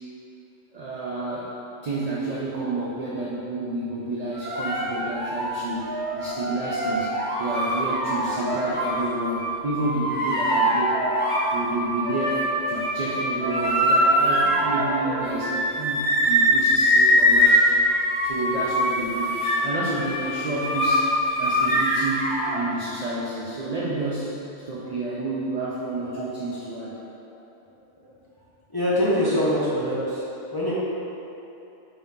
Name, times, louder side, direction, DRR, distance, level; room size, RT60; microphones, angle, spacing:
voice 1, 0.7-1.6 1.8-7.1 7.4-11.0 11.5-17.9 18.2-19.4 19.6-24.3 24.7-27.0, right 2 dB, 60° right, -7 dB, 0.4 m, -30 dB
sound 1, 4.3-9.0 9.4-11.5 11.8-22.6, equal, 40° left, 1.5 m, -23 dB
voice 2, 28.7-30.2 30.5-30.7, left 1 dB, 20° left, -10 dB, 0.7 m, -23 dB
5.4 x 2.7 x 3.6 m, 2.9 s
omnidirectional pair, 1.3 m